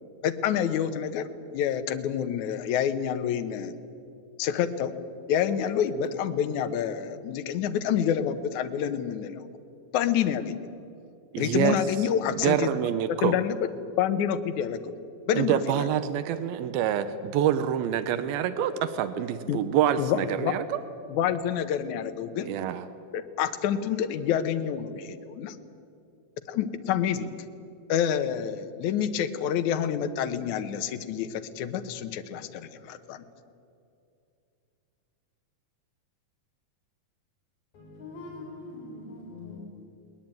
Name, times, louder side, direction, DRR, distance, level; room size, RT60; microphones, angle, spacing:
voice 1, 0.2-1.3 1.5-3.8 4.4-4.9 5.3-9.5 9.9-10.6 11.4-12.7 13.2-13.6 14.0-14.9 15.3-15.8 19.5-19.6 20.0-20.5 21.1-22.5 23.1-25.6 26.5-27.4 27.9-33.2, left 9 dB, 65° left, 9 dB, 2.1 m, -28 dB
voice 2, 11.3-11.8 12.3-13.4 15.3-20.8 22.4-22.9, right 10 dB, 85° right, 11 dB, 2.6 m, -26 dB
voice 3, 37.7-39.6, left 2 dB, 85° left, -2 dB, 5.5 m, -42 dB
20.5 x 19.5 x 9.0 m, 2.6 s
omnidirectional pair, 4.3 m